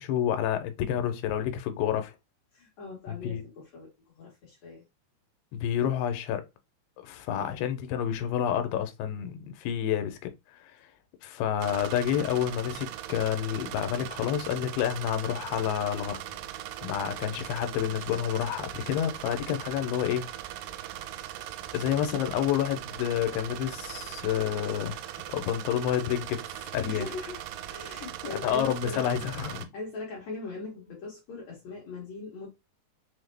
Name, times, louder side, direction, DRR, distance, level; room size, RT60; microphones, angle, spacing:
voice 1, 0.0-2.2 3.1-3.4 5.5-6.5 7.0-10.9 11.2-16.2 16.8-20.3 21.7-27.0 28.4-29.7, left 10 dB, 85° left, 2.4 m, -29 dB
voice 2, 2.5-3.9 4.2-4.8 26.9-29.3 29.7-32.5, left 3 dB, 65° left, 1.8 m, -40 dB
sound 1, 11.6-29.6, right 12 dB, 85° right, 2.0 m, -40 dB
5.9 x 2.1 x 3.2 m
omnidirectional pair, 4.3 m